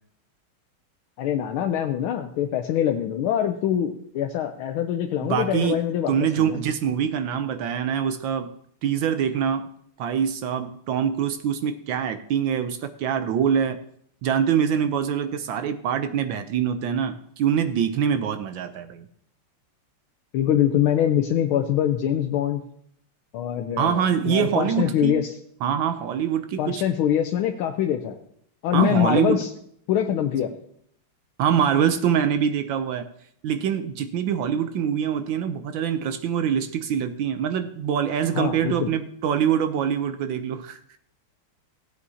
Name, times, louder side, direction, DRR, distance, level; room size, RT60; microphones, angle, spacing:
voice 1, 1.2-6.6 20.3-22.6 23.3-25.3 26.6-28.2 28.6-29.5 29.9-30.5 38.3-38.9, left 10 dB, 80° left, 5 dB, 1.5 m, -24 dB
voice 2, 5.2-5.8 6.1-8.5 8.8-9.7 10.0-13.8 14.2-19.1 23.8-25.2 25.6-26.8 28.7-29.4 31.4-33.1 33.4-40.8, right 8 dB, 75° right, 9 dB, 1.2 m, -24 dB
16.5 x 8.3 x 2.8 m, 0.68 s
omnidirectional pair, 2.4 m